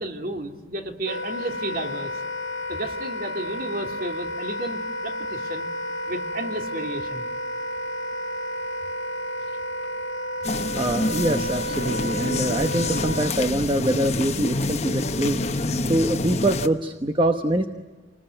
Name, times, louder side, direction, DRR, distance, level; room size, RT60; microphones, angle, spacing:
voice 1, 0.0-2.1 2.7-5.7 6.1-7.3, right 1 dB, 50° right, 4 dB, 2.9 m, -32 dB
Wind instrument woodwind instrument, 1.1-13.3, equal, 75° left, 1.7 m, -31 dB
sound 1, 10.4-16.7, left 2 dB, 35° left, 1.1 m, -27 dB
voice 2, 10.7-15.4 15.9-17.7, right 1 dB, 25° right, 6 dB, 1.0 m, -24 dB
28.0 x 20.5 x 9.2 m, 1.3 s
head